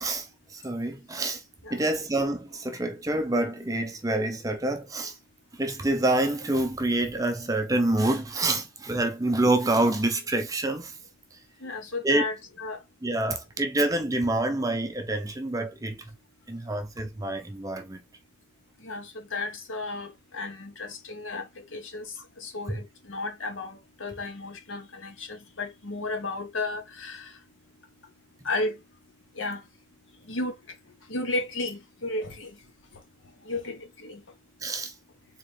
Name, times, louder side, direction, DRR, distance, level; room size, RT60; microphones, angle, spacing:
voice 1, 0.0-1.4 1.7-5.1 5.6-10.9 12.0-12.3 13.0-16.0 16.5-18.0 22.7-22.8 34.6-34.9, right 2 dB, 15° right, 0.6 m, -27 dB
voice 2, 11.6-12.8 18.8-22.1 22.4-27.2 28.4-28.7 29.4-29.6 30.3-30.5 31.1-32.5 33.5-34.2, left 2 dB, 75° left, 1.1 m, -33 dB
3.9 x 3.0 x 3.2 m
head